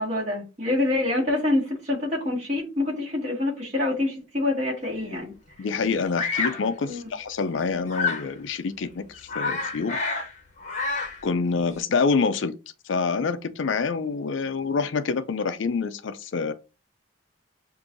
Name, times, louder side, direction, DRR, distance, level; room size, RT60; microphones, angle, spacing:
voice 1, 0.0-5.7 6.8-7.1, left 2 dB, 35° right, 1.8 m, -26 dB
voice 2, 5.6-10.0 11.2-12.5 12.9-16.5, left 4 dB, 65° left, 0.4 m, -26 dB
Bird vocalization bird call bird song, 6.1-6.6 7.9-8.3 8.8-8.9 9.1-10.3 10.6-11.2, left 4 dB, 35° left, 0.8 m, -28 dB
6.0 x 2.6 x 2.5 m
head